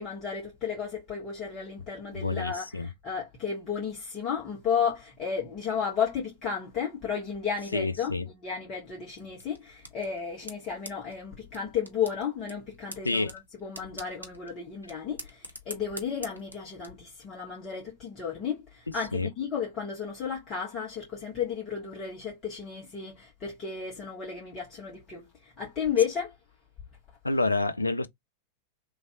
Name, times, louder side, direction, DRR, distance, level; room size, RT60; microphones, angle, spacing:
voice 1, 0.0-26.3, left 7 dB, 30° left, 1.5 m, -33 dB
voice 2, 2.1-2.9 7.7-8.3 13.0-13.3 19.1-19.3 27.2-28.1, left 2 dB, 85° left, 0.4 m, -28 dB
sound 1, 9.1-16.9, equal, 85° right, 0.8 m, -47 dB
3.1 x 2.6 x 2.6 m
figure-of-eight pair, 90°, 0 cm